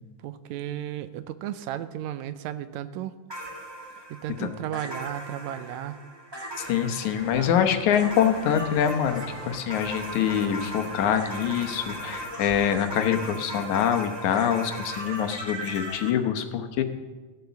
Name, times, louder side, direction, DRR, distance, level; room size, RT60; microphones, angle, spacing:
voice 1, 0.2-3.1 4.1-6.0 7.3-7.7, right 11 dB, 80° right, 12 dB, 1.8 m, -34 dB
sound 1, 3.3-16.1, right 1 dB, 10° right, 1.5 m, -38 dB
voice 2, 6.6-16.8, left 9 dB, 75° left, 6 dB, 2.4 m, -25 dB
sound 2, 7.2-12.3, right 2 dB, 40° right, 1.1 m, -45 dB
15.5 x 8.0 x 7.0 m, 1.3 s
omnidirectional pair, 3.4 m